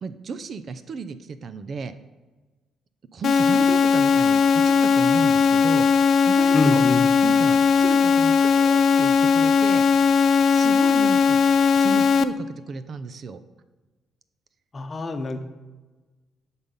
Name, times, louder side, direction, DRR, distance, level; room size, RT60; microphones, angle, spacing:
voice 1, 0.0-1.9 3.1-5.9 6.3-6.8 7.2-9.9 10.5-11.4 11.7-13.4, right 5 dB, 50° right, 12 dB, 0.5 m, -33 dB
sound 1, 3.2-12.2, left 6 dB, 55° left, 0.5 m, -18 dB
voice 2, 6.5-7.0 14.7-15.4, left 3 dB, 30° left, 7 dB, 0.9 m, -25 dB
10.5 x 4.1 x 5.5 m, 1.2 s
cardioid pair, 90°, 0 cm